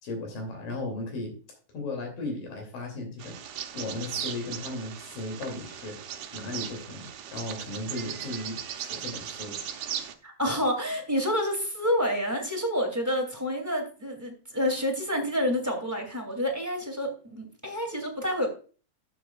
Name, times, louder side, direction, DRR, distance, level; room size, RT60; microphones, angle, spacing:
voice 1, 0.0-1.3 1.7-3.3 3.7-5.9 6.3-9.6, left 2 dB, 75° left, 2 dB, 4.2 m, -36 dB
Bird vocalization bird call bird song, 3.2-10.1, right 9 dB, 70° right, 2.2 m, -38 dB
voice 2, 10.2-18.5, equal, 5° right, 2 dB, 1.8 m, -28 dB
13.0 x 8.3 x 2.3 m, 0.37 s
omnidirectional pair, 4.0 m